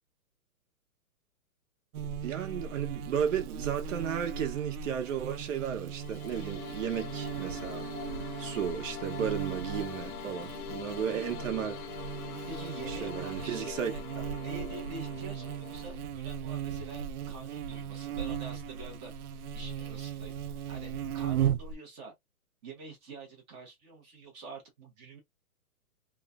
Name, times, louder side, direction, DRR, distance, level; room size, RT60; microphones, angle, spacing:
Buzz, 1.9-21.7, right 8 dB, 75° right, 0.6 m, -37 dB
voice 1, 2.2-7.9 8.4-11.8 12.9-13.9 14.2-14.3, right 8 dB, 55° right, 1.0 m, -34 dB
sound 1, 5.8-15.9, left 11 dB, 70° left, 0.6 m, -43 dB
voice 2, 12.5-14.0 14.4-19.1 19.5-20.4 20.7-22.1 22.6-25.2, right 3 dB, 15° right, 0.6 m, -46 dB
3.1 x 2.2 x 2.4 m
hypercardioid pair, 155°, 45 cm